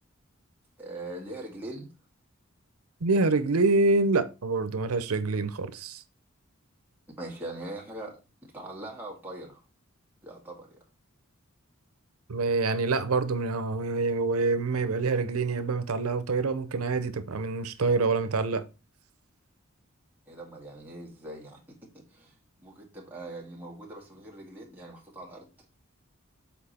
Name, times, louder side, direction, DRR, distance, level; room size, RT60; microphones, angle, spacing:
voice 1, 0.8-1.9 7.2-9.6 10.2-10.8 20.3-21.6 21.9-22.3 22.6-25.5, right 1 dB, 10° right, 2.0 m, -41 dB
voice 2, 3.0-6.0 12.3-18.6, right 3 dB, 85° right, 0.7 m, -26 dB
7.3 x 4.4 x 4.3 m
head